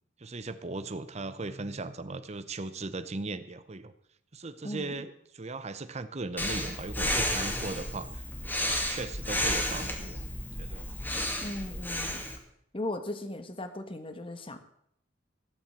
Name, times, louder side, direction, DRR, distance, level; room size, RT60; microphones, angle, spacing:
voice 1, 0.2-3.9 4.3-8.3 8.6-10.2 10.6-10.9, right 3 dB, 35° right, 12 dB, 0.8 m, -38 dB
voice 2, 4.6-5.0 11.4-12.2 12.7-14.6, left 1 dB, 30° left, 9 dB, 1.3 m, -37 dB
Breathing, 6.4-12.4, left 1 dB, 10° left, 2.1 m, -32 dB
15.0 x 7.2 x 8.3 m, 0.71 s
head